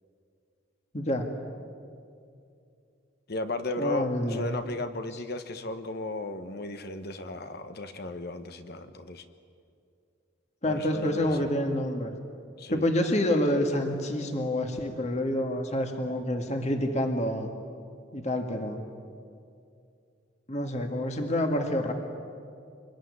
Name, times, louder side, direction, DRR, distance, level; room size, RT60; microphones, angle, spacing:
voice 1, 0.9-1.3 3.8-4.6 10.6-12.1 12.7-17.5 18.1-18.8 20.5-21.9, left 1 dB, 35° left, 4 dB, 2.0 m, -28 dB
voice 2, 3.3-9.2 10.6-11.5 12.6-12.8, left 2 dB, 50° left, 9 dB, 1.2 m, -35 dB
25.5 x 21.5 x 9.8 m, 2.4 s
head